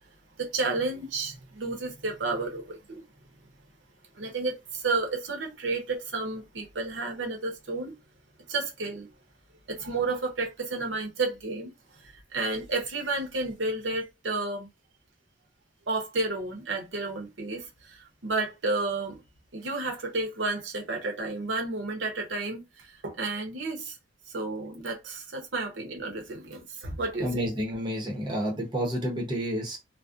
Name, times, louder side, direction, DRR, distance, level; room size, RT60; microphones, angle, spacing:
voice 1, 0.4-3.0 4.2-7.9 8.5-9.1 9.7-11.7 12.3-14.7 15.9-19.2 19.5-23.9 24.3-27.4, right 3 dB, 75° right, 0.8 m, -31 dB
voice 2, 27.2-29.8, equal, 25° right, 0.7 m, -30 dB
2.5 x 2.0 x 2.4 m
head